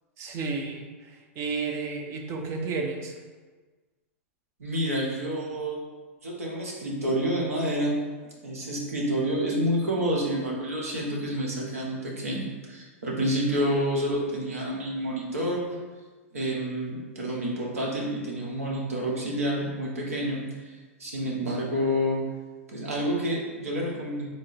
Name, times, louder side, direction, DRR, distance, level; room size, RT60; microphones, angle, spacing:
voice 1, 0.2-3.1, right 4 dB, 35° right, 3 dB, 0.6 m, -32 dB
voice 2, 4.6-5.8 6.2-8.0 8.4-15.6 16.3-20.7 21.0-22.2 22.7-24.3, equal, 90° right, -3 dB, 1.1 m, -28 dB
3.8 x 2.1 x 4.0 m, 1.3 s
hypercardioid pair, 115°, 8 cm